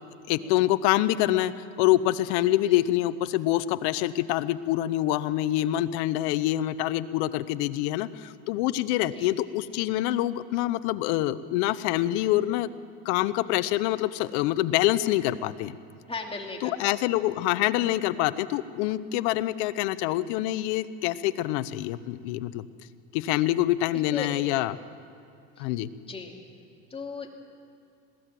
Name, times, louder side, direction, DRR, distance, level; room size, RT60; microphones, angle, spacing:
voice 1, 0.3-12.7 13.0-15.8 16.6-22.7 23.1-24.7 25.6-25.9, left 15 dB, 70° left, 15 dB, 0.9 m, -26 dB
voice 2, 16.1-16.9 24.1-24.3 25.6-25.7 26.0-26.3 26.9-27.3, left 4 dB, 15° left, 1 dB, 2.7 m, -37 dB
21.5 x 16.5 x 7.7 m, 2.4 s
supercardioid pair, 115°, 34 cm